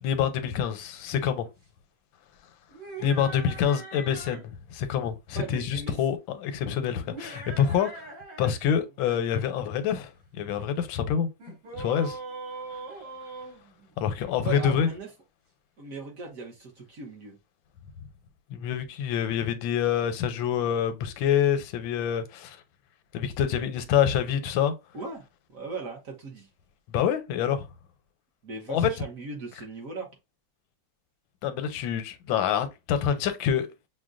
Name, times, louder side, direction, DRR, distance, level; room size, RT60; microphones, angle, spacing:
voice 1, 0.0-1.5 3.0-8.1 8.4-11.3 11.8-12.2 14.0-14.9 18.5-22.6 23.1-24.7 26.9-27.6 28.7-28.9 31.4-33.7, left 8 dB, 85° left, 1.4 m, -26 dB
sound 1, 2.7-4.5 7.0-8.5 8.8-9.2 11.4-14.3, right 3 dB, 80° right, 3.4 m, -41 dB
voice 2, 5.4-5.9 14.4-15.1 15.8-17.3 24.9-25.3 25.5-26.5 28.4-30.1, right 4 dB, 55° right, 1.1 m, -38 dB
6.3 x 2.2 x 2.4 m
omnidirectional pair, 2.1 m